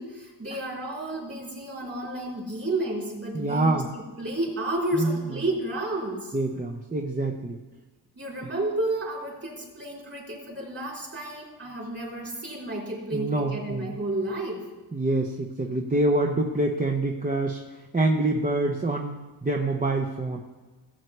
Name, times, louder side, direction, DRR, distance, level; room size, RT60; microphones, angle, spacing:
voice 1, 0.0-3.8 4.2-6.4 8.2-14.6, right 1 dB, 35° right, -3 dB, 3.8 m, -31 dB
voice 2, 3.3-3.9 4.9-5.2 6.3-7.6 13.1-14.0 14.9-17.6 17.9-19.2 19.4-20.4, right 2 dB, 20° right, 0 dB, 0.7 m, -26 dB
16.5 x 8.1 x 3.3 m, 1.3 s
wide cardioid pair, 110°, 41 cm